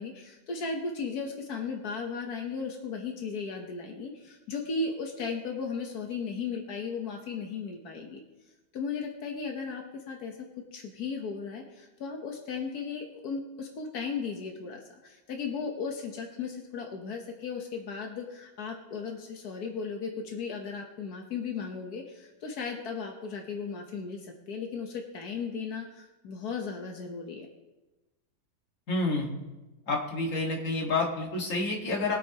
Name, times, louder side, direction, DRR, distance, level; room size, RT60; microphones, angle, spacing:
voice 1, 0.0-8.2 8.7-10.4 10.7-27.5, left 5 dB, 85° left, 2 dB, 1.6 m, -36 dB
voice 2, 28.9-29.3 29.9-32.2, left 2 dB, 55° left, -1 dB, 2.2 m, -29 dB
22.0 x 8.4 x 2.9 m, 1.1 s
omnidirectional pair, 1.6 m